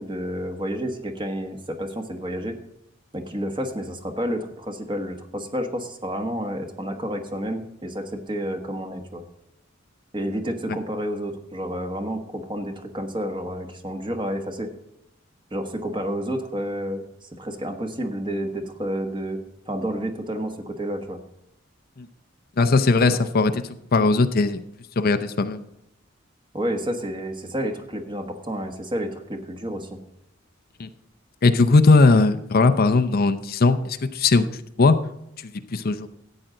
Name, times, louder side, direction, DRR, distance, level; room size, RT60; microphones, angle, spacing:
voice 1, 0.0-2.6 3.1-9.2 10.1-14.7 15.5-19.4 19.7-21.2 23.1-23.2 26.5-30.0, equal, 25° right, 5 dB, 1.3 m, -30 dB
voice 2, 22.6-23.6 23.9-24.6 25.0-25.6 30.8-30.9 31.4-34.5 34.8-35.0 35.7-36.1, left 3 dB, 50° left, 10 dB, 0.6 m, -18 dB
13.5 x 8.9 x 3.9 m, 0.82 s
head